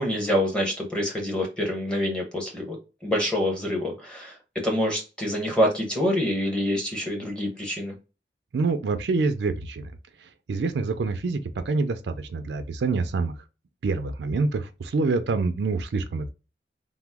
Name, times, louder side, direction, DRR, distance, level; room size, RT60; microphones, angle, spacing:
voice 1, 0.0-4.4 4.6-8.0, equal, 5° left, 0.8 m, -26 dB
voice 2, 8.5-9.9 10.2-13.3 13.8-16.3, right 3 dB, 80° right, 0.4 m, -26 dB
2.9 x 2.0 x 3.4 m
head